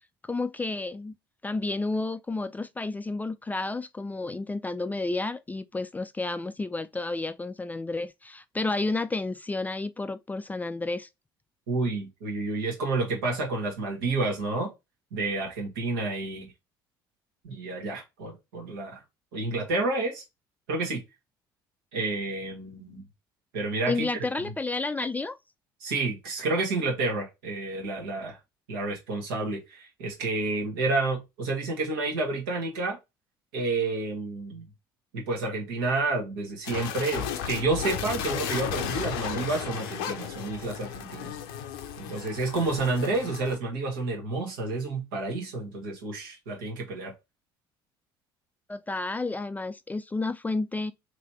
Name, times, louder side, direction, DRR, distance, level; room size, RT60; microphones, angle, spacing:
voice 1, 0.2-1.1 1.4-11.1 23.9-25.4 48.7-50.9, left 3 dB, 15° left, 0.3 m, -31 dB
voice 2, 11.7-14.7 15.1-16.5 17.4-19.0 19.3-20.2 20.7-21.0 21.9-23.0 23.5-24.1 25.8-28.4 28.7-33.0 33.5-34.7 35.1-41.3 42.0-47.1, right 3 dB, 75° right, 1.3 m, -30 dB
sound 1, 36.6-43.6, left 8 dB, 70° left, 0.6 m, -34 dB
3.1 x 3.0 x 2.9 m
figure-of-eight pair, 55°, 12 cm